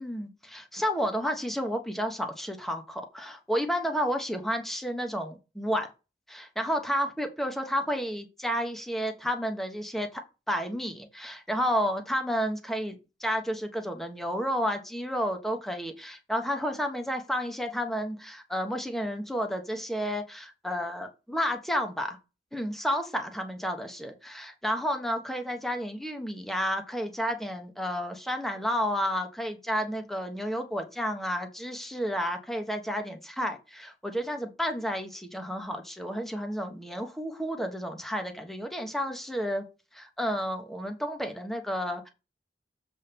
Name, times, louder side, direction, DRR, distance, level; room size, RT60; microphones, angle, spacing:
voice 1, 0.0-5.9 6.3-10.2 10.5-22.2 22.5-39.6 39.9-42.1, equal, ahead, 4 dB, 1.2 m, -31 dB
7.3 x 3.6 x 5.9 m, 0.28 s
head